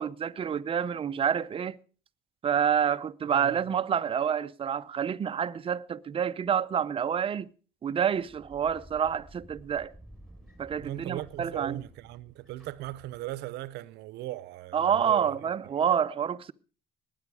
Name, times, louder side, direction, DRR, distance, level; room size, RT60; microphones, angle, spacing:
voice 1, 0.0-1.8 2.4-7.5 7.8-9.9 10.6-11.8 14.7-16.5, right 8 dB, 35° right, 0.6 m, -28 dB
voice 2, 3.3-3.8 10.8-15.5, right 16 dB, 85° right, 0.7 m, -39 dB
sound 1, 8.1-13.7, right 1 dB, ahead, 3.9 m, -53 dB
19.0 x 9.3 x 4.8 m
cardioid pair, 110°, 17 cm